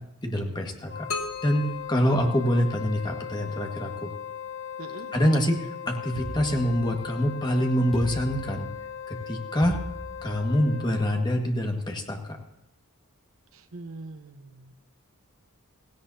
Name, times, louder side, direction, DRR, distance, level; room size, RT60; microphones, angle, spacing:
voice 1, 0.2-1.1 1.4-4.1 5.1-8.7 9.1-9.8 10.2-12.4, equal, 20° left, 2 dB, 1.7 m, -25 dB
Wind instrument woodwind instrument, 0.8-11.4, left 8 dB, 60° left, 1.6 m, -39 dB
sound 1, 1.1-3.0, left 4 dB, 75° left, 1.1 m, -37 dB
voice 2, 4.8-5.1 13.5-14.7, right 2 dB, 70° right, 7 dB, 1.1 m, -42 dB
sound 2, 6.1-7.3 7.9-9.0 9.6-10.7, right 1 dB, ahead, 6.2 m, -38 dB
17.0 x 16.5 x 2.8 m, 0.86 s
head